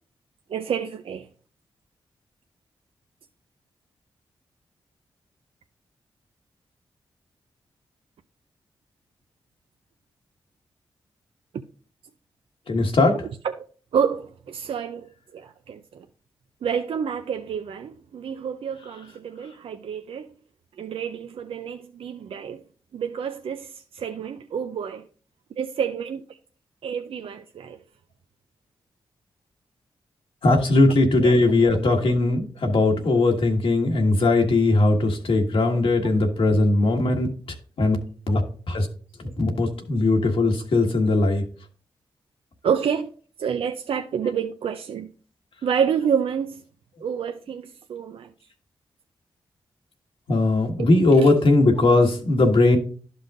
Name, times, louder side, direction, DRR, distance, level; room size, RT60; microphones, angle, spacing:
voice 1, 0.5-1.3 13.4-13.6 13.9-16.1 16.6-20.3 20.8-22.6 22.9-25.0 25.6-26.4 26.8-27.8 31.2-31.3 31.7-31.8 35.0-35.1 42.6-43.1 43.4-45.1 45.6-46.6 47.0-48.3 50.8-50.9 51.2-51.3, right 7 dB, 75° right, 0.5 m, -28 dB
voice 2, 12.7-13.2 30.4-37.3 37.8-38.0 38.3-38.4 38.7-38.9 39.4-41.4 50.3-52.8, left 2 dB, 70° left, 1.6 m, -19 dB
11.5 x 5.4 x 2.5 m
cardioid pair, 50°, 10 cm